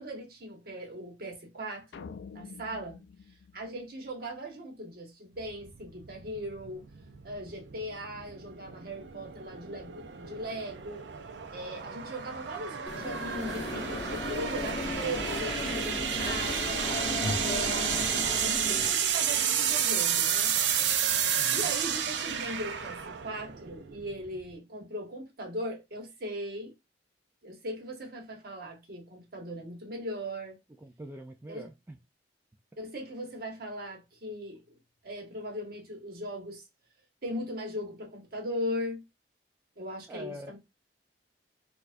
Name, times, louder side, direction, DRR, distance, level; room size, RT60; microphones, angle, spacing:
voice 1, 0.0-3.0 3.5-6.8 7.2-11.1 11.5-16.9 17.4-20.5 21.5-26.7 27.4-30.6 31.5-31.7 32.8-34.8 35.0-36.6 37.2-39.0 39.8-40.6, equal, 55° right, 1.1 m, -39 dB
sound 1, 1.9-4.4, left 5 dB, 75° left, 0.3 m, -47 dB
sound 2, 5.4-24.5, right 8 dB, 75° right, 0.5 m, -31 dB
sound 3, 12.9-18.9, left 1 dB, 25° left, 0.9 m, -34 dB
voice 2, 21.4-21.7 30.8-32.0 40.1-40.6, equal, 15° right, 0.3 m, -44 dB
4.5 x 2.4 x 2.5 m
head